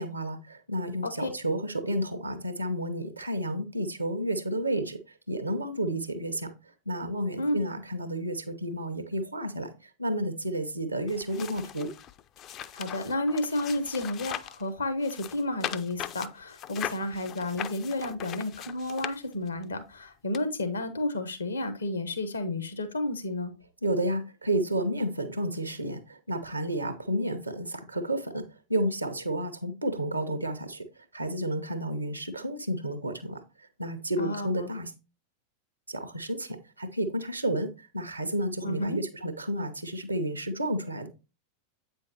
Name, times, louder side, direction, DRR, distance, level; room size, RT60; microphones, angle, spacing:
voice 1, 0.0-5.0 5.3-6.5 6.9-11.9 23.8-30.8 31.1-34.9 35.9-41.1, right 1 dB, 85° right, 0.8 m, -31 dB
sound 1, 11.1-14.6 15.0-19.6 20.3-20.4, left 10 dB, 35° left, 0.4 m, -39 dB
voice 2, 12.7-23.5 34.2-34.7 38.6-39.0, left 1 dB, 75° left, 0.9 m, -31 dB
8.0 x 5.6 x 2.9 m
figure-of-eight pair, 90°, 0 cm